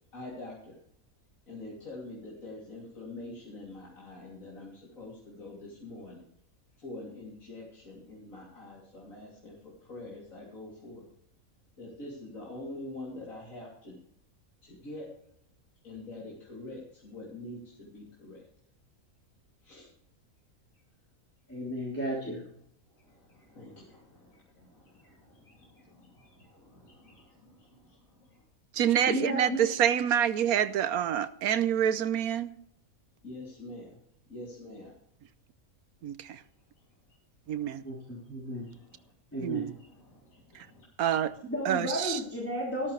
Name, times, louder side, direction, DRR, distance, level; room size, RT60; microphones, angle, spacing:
voice 1, 0.1-0.8 1.5-6.3 6.8-11.1 11.8-14.0 14.6-15.1 15.8-18.5 19.6-19.9 22.9-28.4 33.2-34.0 34.3-35.0 37.7-39.1 39.5-40.9 41.2-41.4, left 2 dB, 65° left, 3.5 m, -46 dB
voice 2, 21.5-22.4 29.1-29.6 37.8-38.7 39.3-39.7 41.5-42.9, equal, 10° left, 3.3 m, -33 dB
voice 3, 28.7-32.5 36.0-36.4 37.5-37.8 39.4-39.7 41.0-41.3 41.6-42.2, right 9 dB, 85° right, 1.3 m, -27 dB
13.5 x 13.0 x 3.3 m
omnidirectional pair, 1.5 m